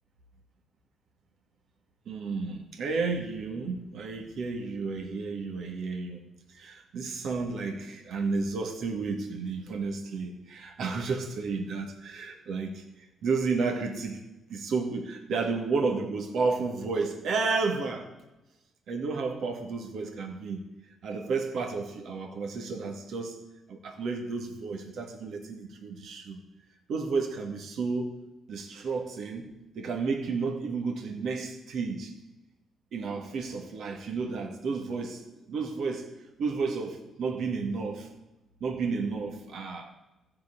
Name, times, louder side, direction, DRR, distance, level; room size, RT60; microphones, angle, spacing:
voice 1, 2.1-6.2 6.5-12.8 13.2-14.2 14.5-18.1 18.9-20.6 21.0-23.4 23.7-26.4 26.9-28.2 28.5-29.5 29.7-32.1 32.9-35.2 35.5-36.1 36.4-38.1 38.6-39.9, right 4 dB, 70° right, 3 dB, 2.2 m, -32 dB
14.5 x 5.9 x 8.7 m, 1.0 s
cardioid pair, 90°, 0 cm